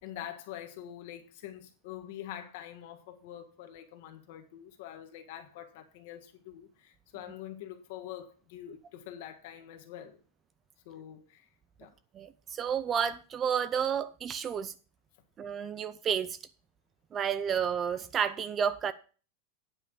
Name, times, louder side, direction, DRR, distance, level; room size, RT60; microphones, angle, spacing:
voice 1, 0.0-10.2 10.8-11.4 11.8-11.9, left 11 dB, 50° left, 1.5 m, -45 dB
voice 2, 12.1-14.7 15.4-16.4 17.1-18.9, right 7 dB, 20° right, 0.3 m, -31 dB
9.4 x 5.4 x 6.4 m
supercardioid pair, 175°, 0 cm